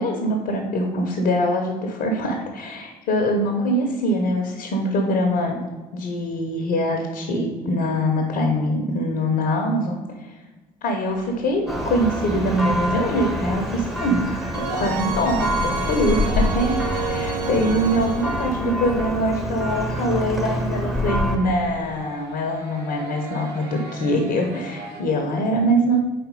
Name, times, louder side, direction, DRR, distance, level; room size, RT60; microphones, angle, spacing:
voice 1, 0.0-5.6 5.9-10.0 10.2-10.3 10.8-14.3 14.7-26.0, equal, 50° left, 2 dB, 0.9 m, -23 dB
sound 1, 11.1-11.8 14.5-18.5, right 4 dB, 85° right, 0.5 m, -30 dB
Church bell, 11.7-21.4, equal, ahead, 1.0 m, -26 dB
sound 2, 18.8-25.0, right 3 dB, 50° right, 2.0 m, -41 dB
4.3 x 4.2 x 5.3 m, 1.3 s
figure-of-eight pair, 55°, 21 cm